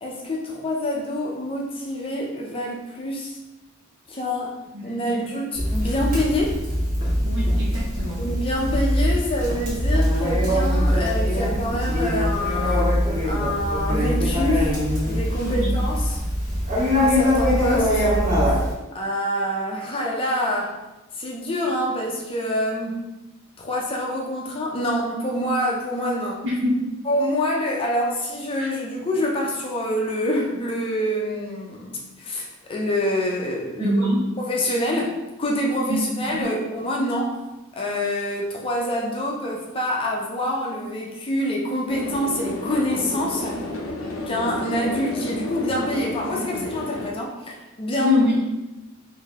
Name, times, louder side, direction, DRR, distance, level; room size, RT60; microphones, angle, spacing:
voice 1, 0.0-3.4 4.1-6.6 8.2-12.9 13.3-14.8 15.1-16.2 16.9-18.0 18.9-20.8 21.2-23.0 23.6-26.4 27.0-33.9 34.4-37.5 37.7-43.6 44.3-48.2, left 1 dB, 25° left, -2 dB, 0.5 m, -26 dB
voice 2, 4.7-5.2 7.2-8.2 15.6-15.7 26.4-26.9 33.8-34.2 35.9-36.0 36.3-36.5 48.0-48.4, equal, 60° right, -6 dB, 0.7 m, -24 dB
Conversation, 5.5-18.7, equal, 45° right, 1.3 m, -22 dB
sound 1, 41.9-47.1, left 2 dB, 75° left, 0.5 m, -31 dB
3.8 x 2.7 x 3.5 m, 1.0 s
head